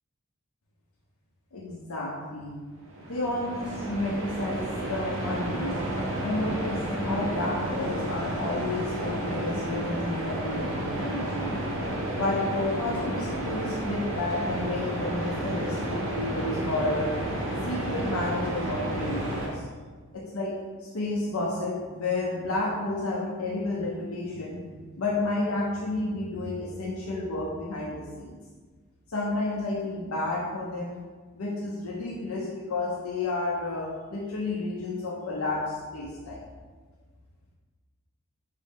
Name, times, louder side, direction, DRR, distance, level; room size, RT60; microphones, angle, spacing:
voice 1, 1.5-2.6 3.1-5.8 6.2-11.6 12.1-17.1 17.6-19.6 20.1-20.5 20.8-28.4 29.1-30.9 31.3-36.4, left 2 dB, 80° left, -4 dB, 0.7 m, -31 dB
sound 1, 2.8-19.5, right 1 dB, 75° right, 1.0 m, -31 dB
5.2 x 2.7 x 3.5 m, 1.4 s
head